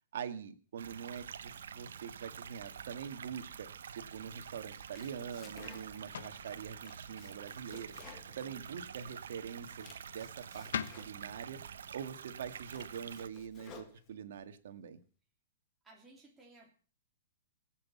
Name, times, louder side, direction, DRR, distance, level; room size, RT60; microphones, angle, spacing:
voice 1, 0.1-3.7 3.9-7.9 8.4-10.7 11.0-11.6 11.9-15.0, right 8 dB, 65° right, 8 dB, 1.8 m, -44 dB
sound 1, 0.8-13.3, right 7 dB, 90° right, 1.0 m, -48 dB
Domestic sounds home sounds, 4.7-6.2 6.6-9.1 9.5-11.4 12.0-12.1 12.5-14.4, left 6 dB, 20° left, 1.7 m, -56 dB
sound 2, 4.9-14.1, left 8 dB, 80° left, 1.2 m, -49 dB
voice 2, 15.8-16.7, right 2 dB, 10° right, -1 dB, 3.1 m, -58 dB
18.5 x 7.9 x 7.1 m, 0.41 s
hypercardioid pair, 165°, 0 cm